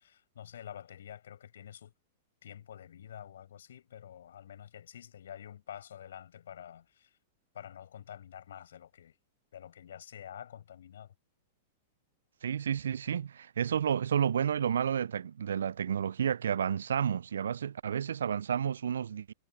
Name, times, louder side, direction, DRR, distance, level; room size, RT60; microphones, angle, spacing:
voice 1, 0.0-1.9 2.4-7.1 7.5-9.2 9.5-11.1, left 9 dB, 70° left, 6.4 m, -48 dB
voice 2, 12.4-19.3, right 8 dB, 75° right, 0.4 m, -31 dB
figure-of-eight pair, 100°, 0 cm